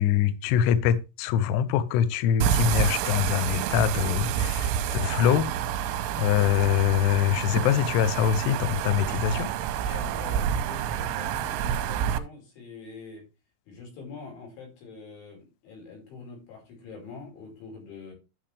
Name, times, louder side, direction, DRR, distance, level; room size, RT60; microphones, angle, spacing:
voice 1, 0.0-5.5 6.2-9.5 9.9-10.0, left 9 dB, 90° left, 2.3 m, -24 dB
sound 1, 2.4-12.2, right 9 dB, 85° right, 3.1 m, -28 dB
voice 2, 9.8-13.2 13.7-18.1, left 4 dB, 65° left, 7.3 m, -44 dB
11.5 x 6.8 x 3.4 m
omnidirectional pair, 5.9 m